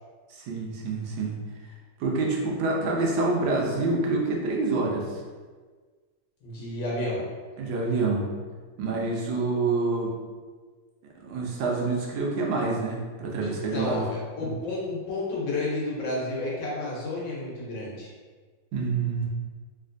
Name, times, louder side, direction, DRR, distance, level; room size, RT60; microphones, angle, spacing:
voice 1, 0.3-1.3 1.6-1.7 2.0-5.2 7.6-8.3 8.8-10.1 11.2-14.0 14.4-14.5 18.7-19.3, right 3 dB, 80° right, -1 dB, 1.3 m, -27 dB
voice 2, 6.4-7.3 13.4-18.1, left 2 dB, 75° left, -5 dB, 1.4 m, -31 dB
3.2 x 2.8 x 2.5 m, 1.5 s
omnidirectional pair, 2.1 m